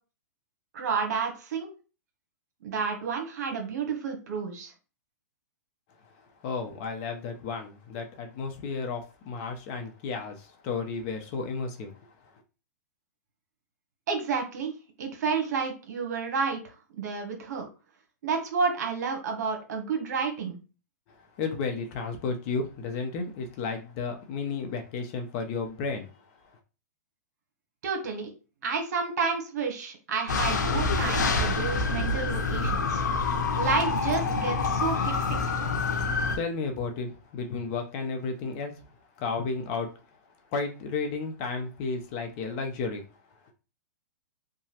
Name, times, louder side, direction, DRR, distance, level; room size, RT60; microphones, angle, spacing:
voice 1, 0.7-1.7 2.6-4.7 14.1-17.7 18.2-20.6 27.8-28.3 28.6-33.0 33.6-35.6, right 5 dB, 65° right, 1.0 m, -30 dB
voice 2, 6.2-12.0 21.2-26.1 36.3-38.7 39.2-39.9 40.5-43.0, left 4 dB, 40° left, 0.6 m, -33 dB
sound 1, 30.3-36.4, left 4 dB, 90° left, 0.6 m, -27 dB
2.9 x 2.2 x 2.8 m
hypercardioid pair, 140°, 10 cm